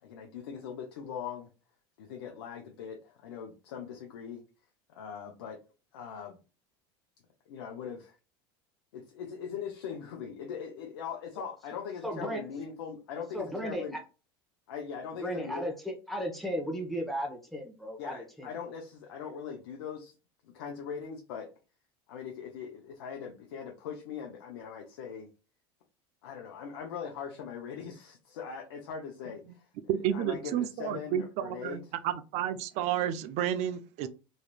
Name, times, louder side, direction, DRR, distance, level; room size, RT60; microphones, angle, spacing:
voice 1, 0.0-1.5 2.0-4.4 4.9-5.6 5.9-6.4 7.5-8.2 8.9-14.0 14.7-15.6 18.0-20.1 20.4-21.5 22.1-25.3 26.2-31.8, left 7 dB, 80° left, 1 dB, 0.6 m, -41 dB
voice 2, 12.0-12.4 13.3-14.0 15.2-18.5, equal, ahead, 0 dB, 1.1 m, -35 dB
voice 3, 29.9-34.1, right 10 dB, 60° right, 11 dB, 0.5 m, -31 dB
3.1 x 2.8 x 2.4 m, 0.32 s
hypercardioid pair, 90°, 13 cm